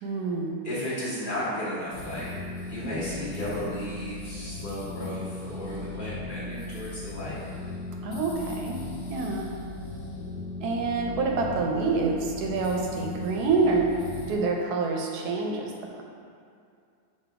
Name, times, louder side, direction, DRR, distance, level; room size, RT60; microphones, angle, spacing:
voice 1, 0.0-0.6 8.0-8.8 9.1-9.5 10.6-13.9 14.3-16.0, right 4 dB, 85° right, 1 dB, 1.2 m, -27 dB
voice 2, 0.6-2.3 2.7-7.4, left 1 dB, 40° left, -9 dB, 0.9 m, -34 dB
sound 1, 1.9-14.4, left 2 dB, 85° left, 1.3 m, -37 dB
5.1 x 3.0 x 3.4 m, 2.4 s
omnidirectional pair, 1.6 m